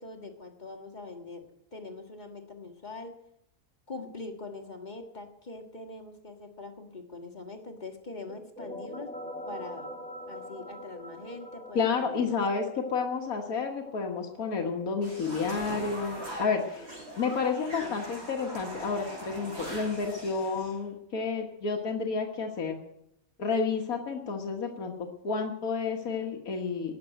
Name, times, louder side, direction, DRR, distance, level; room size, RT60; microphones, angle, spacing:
voice 1, 0.0-3.2 3.9-9.2 9.5-9.9 10.3-12.8 17.8-18.0, left 2 dB, 35° left, 5 dB, 1.6 m, -43 dB
sound 1, 8.3-17.7, left 1 dB, 5° left, 1.9 m, -45 dB
voice 2, 11.8-12.6 12.9-16.9 17.2-22.8 23.4-24.9 25.2-27.0, left 5 dB, 90° left, 1 dB, 1.9 m, -30 dB
sound 2, 15.0-20.7, right 1 dB, 50° right, 6.0 m, -41 dB
19.0 x 6.9 x 9.1 m, 0.80 s
omnidirectional pair, 1.5 m